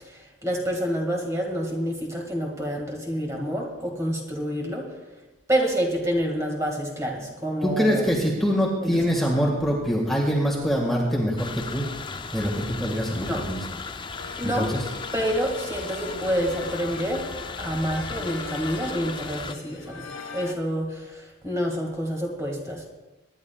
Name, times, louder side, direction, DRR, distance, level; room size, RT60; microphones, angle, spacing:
voice 1, 0.1-4.9 5.5-8.0 8.8-8.9 13.2-13.4 14.4-14.8 15.1-17.2 17.6-22.8, equal, 15° right, -1 dB, 2.0 m, -28 dB
voice 2, 7.6-11.9 12.3-13.6 14.4-14.9, equal, ahead, -3 dB, 1.8 m, -24 dB
sound 1, 11.4-19.6, left 4 dB, 20° left, 0.4 m, -36 dB
sound 2, 14.0-20.5, left 3 dB, 60° left, 1.3 m, -40 dB
25.0 x 11.0 x 2.4 m, 1.1 s
head